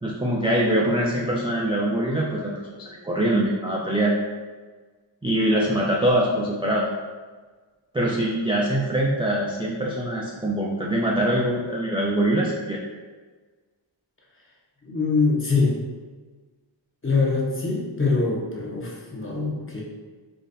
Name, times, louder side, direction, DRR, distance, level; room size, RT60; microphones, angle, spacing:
voice 1, 0.0-4.1 5.2-6.8 7.9-12.8, right 1 dB, 10° right, -4 dB, 0.3 m, -23 dB
voice 2, 14.8-15.7 17.0-19.8, left 4 dB, 25° left, -4 dB, 0.8 m, -23 dB
3.9 x 2.5 x 2.6 m, 1.4 s
wide cardioid pair, 75°, 47 cm